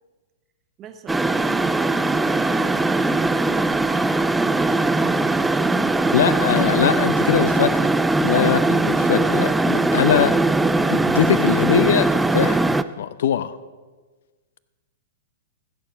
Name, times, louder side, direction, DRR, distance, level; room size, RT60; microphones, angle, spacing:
voice 1, 0.8-4.0 4.4-6.2 6.5-6.6, right 7 dB, 30° right, 8 dB, 1.2 m, -38 dB
sound 1, 1.1-12.8, right 2 dB, 5° right, 0.4 m, -20 dB
voice 2, 6.1-7.9 8.2-10.3 10.9-12.7 13.0-13.6, left 9 dB, 60° left, 15 dB, 0.6 m, -21 dB
15.0 x 6.8 x 5.8 m, 1.3 s
figure-of-eight pair, 105°, 0 cm